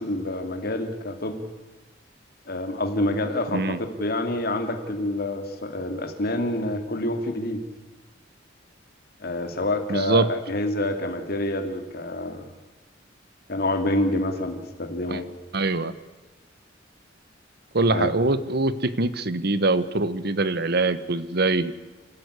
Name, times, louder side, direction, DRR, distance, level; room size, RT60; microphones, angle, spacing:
voice 1, 0.0-1.4 2.5-7.6 9.2-12.4 13.5-15.3 17.9-18.1, left 1 dB, 55° left, 5 dB, 2.6 m, -27 dB
voice 2, 9.9-10.3 15.1-15.2 15.5-15.9 17.7-21.7, right 2 dB, 60° right, 15 dB, 1.2 m, -23 dB
29.5 x 13.0 x 9.7 m, 1.1 s
head